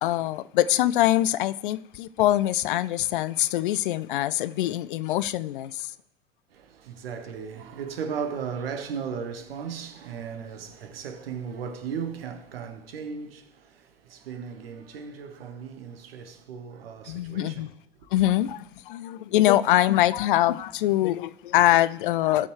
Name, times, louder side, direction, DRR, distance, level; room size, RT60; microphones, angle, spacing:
voice 1, 0.0-5.9 17.1-17.7 18.1-22.5, left 14 dB, 55° left, 0.5 m, -23 dB
voice 2, 6.5-17.7 18.0-18.1, right 6 dB, 65° right, 1.4 m, -36 dB
18.0 x 6.9 x 3.2 m
figure-of-eight pair, 80°, 31 cm